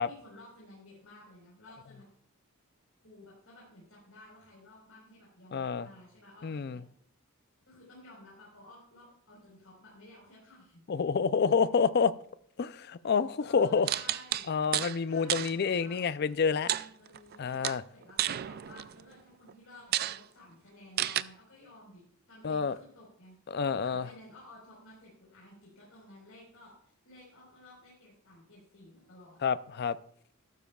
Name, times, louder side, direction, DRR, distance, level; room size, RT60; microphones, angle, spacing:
voice 1, 0.0-2.1 3.0-6.8 7.7-10.8 13.0-14.5 15.0-16.0 16.5-17.6 17.9-29.4, left 1 dB, 65° left, 4.3 m, -54 dB
voice 2, 5.5-5.9 6.4-6.8 10.9-12.1 12.6-13.9 14.5-16.7 17.4-17.8 22.4-22.8 23.5-24.1 29.4-30.0, left 5 dB, 45° left, 0.4 m, -28 dB
sound 1, 13.9-15.0 15.3-15.5 16.7-17.4 17.6-19.0 19.5-19.6 19.9-20.2 21.0-21.2, right 12 dB, 45° right, 0.3 m, -31 dB
13.5 x 12.0 x 2.3 m
head